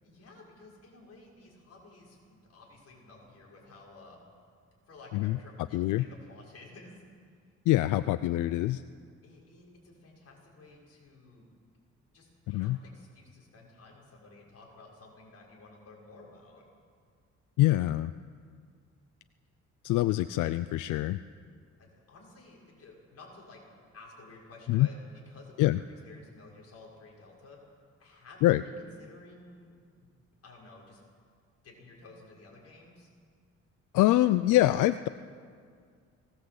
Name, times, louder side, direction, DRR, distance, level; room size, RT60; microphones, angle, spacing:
voice 1, 0.0-4.2 4.9-7.0 9.2-11.5 12.1-16.6 21.8-23.6 23.9-27.6 28.0-29.7 30.4-31.0 31.6-33.1, left 2 dB, 55° left, -2 dB, 6.4 m, -53 dB
voice 2, 5.7-6.1 7.7-8.8 12.5-12.8 17.6-18.1 19.8-21.2 24.7-24.9 25.6-25.8 28.4-28.6 33.9-35.1, left 16 dB, 90° left, 14 dB, 0.5 m, -25 dB
19.5 x 19.0 x 8.1 m, 2.1 s
cardioid pair, 90°, 30 cm